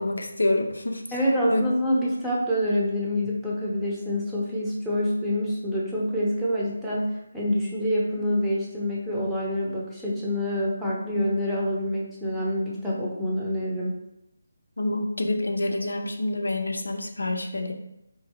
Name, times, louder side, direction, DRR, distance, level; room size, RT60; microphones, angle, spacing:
voice 1, 0.0-1.2 1.5-1.6 14.8-17.7, left 2 dB, 85° left, 3 dB, 0.5 m, -27 dB
voice 2, 1.1-13.9, equal, 5° right, -8 dB, 0.7 m, -26 dB
3.8 x 2.6 x 2.9 m, 0.87 s
figure-of-eight pair, 155°, 0 cm